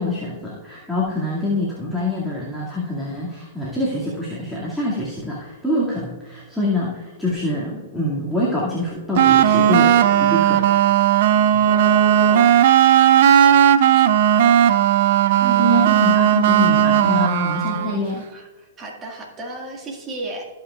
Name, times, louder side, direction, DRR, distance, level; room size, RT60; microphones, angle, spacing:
voice 1, 0.0-10.6 15.4-18.3, left 1 dB, ahead, -8 dB, 2.2 m, -25 dB
sound 1, 9.2-18.0, right 10 dB, 60° right, 0.6 m, -15 dB
voice 2, 11.6-12.6 13.9-14.1 18.1-20.5, right 2 dB, 25° right, 0 dB, 2.0 m, -33 dB
17.0 x 5.9 x 2.4 m, 1.4 s
hypercardioid pair, 115°, 0 cm